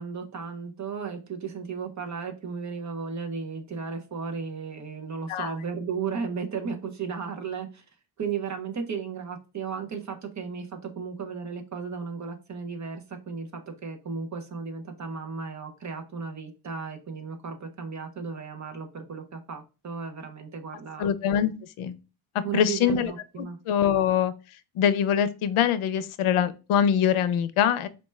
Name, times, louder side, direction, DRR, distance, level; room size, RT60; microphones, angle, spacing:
voice 1, 0.0-7.8 8.2-21.1 22.4-23.6, right 5 dB, 35° right, 6 dB, 0.5 m, -35 dB
voice 2, 21.0-21.9 22.5-23.1 23.4-24.3 24.8-27.9, left 8 dB, 85° left, 14 dB, 0.6 m, -24 dB
4.2 x 2.3 x 3.1 m, 0.31 s
wide cardioid pair, 165°, 48 cm